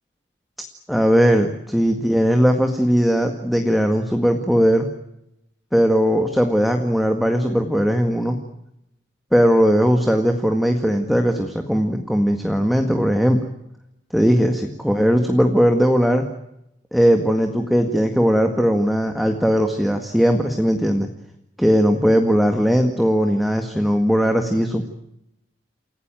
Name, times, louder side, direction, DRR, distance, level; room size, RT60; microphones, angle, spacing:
voice 1, 0.9-4.9 5.7-8.4 9.3-13.4 14.1-16.3 16.9-21.1 21.6-24.8, equal, ahead, 5 dB, 1.8 m, -18 dB
29.0 x 17.0 x 9.1 m, 0.83 s
head